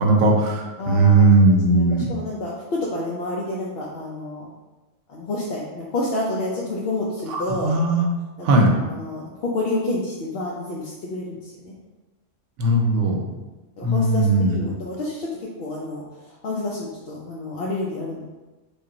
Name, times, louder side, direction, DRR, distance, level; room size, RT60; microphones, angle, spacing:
voice 1, 0.0-2.1 7.3-8.1 8.4-8.7 12.6-13.2 13.8-14.6, right 2 dB, 75° right, 2 dB, 0.9 m, -18 dB
voice 2, 0.8-4.5 5.1-7.7 8.4-11.7 13.8-18.2, left 2 dB, 60° left, -4 dB, 0.7 m, -29 dB
3.4 x 2.4 x 3.8 m, 1.2 s
omnidirectional pair, 1.3 m